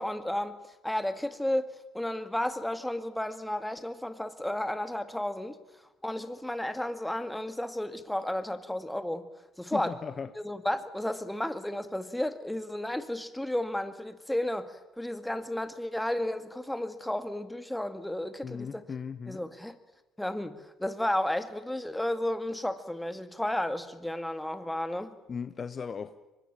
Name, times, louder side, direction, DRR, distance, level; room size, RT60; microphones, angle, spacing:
voice 1, 0.0-5.6 6.0-9.3 9.6-10.0 10.4-18.8 19.3-19.8 20.2-25.2, left 1 dB, 5° left, 2.2 m, -33 dB
voice 2, 9.7-10.3 18.4-19.4 25.3-26.3, left 6 dB, 40° left, 1.1 m, -37 dB
24.0 x 21.0 x 8.8 m
hypercardioid pair, 65°, 0 cm